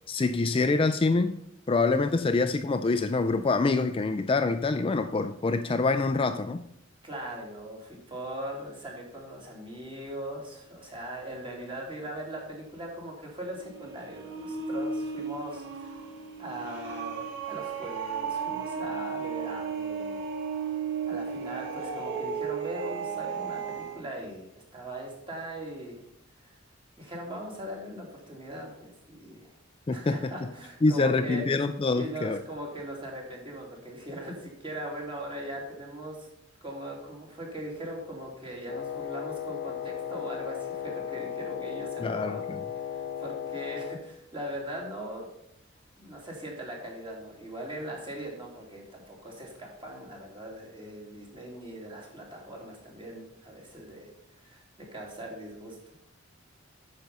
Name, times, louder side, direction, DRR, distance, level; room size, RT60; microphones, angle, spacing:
voice 1, 0.1-1.4 1.7-6.6 29.9-30.3 30.8-32.4 42.0-42.4, left 3 dB, 25° left, 0.4 m, -25 dB
voice 2, 7.0-16.0 16.4-20.3 21.1-26.0 26.4-26.6 27.0-29.5 29.9-31.4 31.9-36.3 36.6-42.4 42.7-45.3 46.0-54.1 54.4-56.1, right 1 dB, 25° right, 2.7 m, -40 dB
sound 1, 13.5-24.0, right 6 dB, 65° right, 1.8 m, -34 dB
Wind instrument woodwind instrument, 38.7-44.0, left 9 dB, 55° left, 1.0 m, -36 dB
9.1 x 6.6 x 5.4 m
head